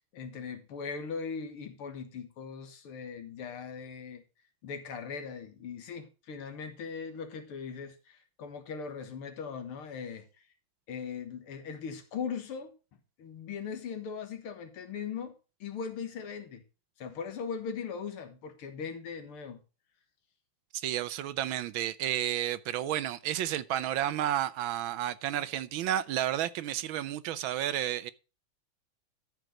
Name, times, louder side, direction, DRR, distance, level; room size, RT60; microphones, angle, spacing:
voice 1, 0.1-4.2 4.6-10.3 10.9-12.7 13.2-15.4 15.6-16.6 17.0-19.6, left 6 dB, 85° left, 2.3 m, -39 dB
voice 2, 20.7-28.1, right 11 dB, 75° right, 1.4 m, -31 dB
13.0 x 4.7 x 6.3 m
omnidirectional pair, 2.4 m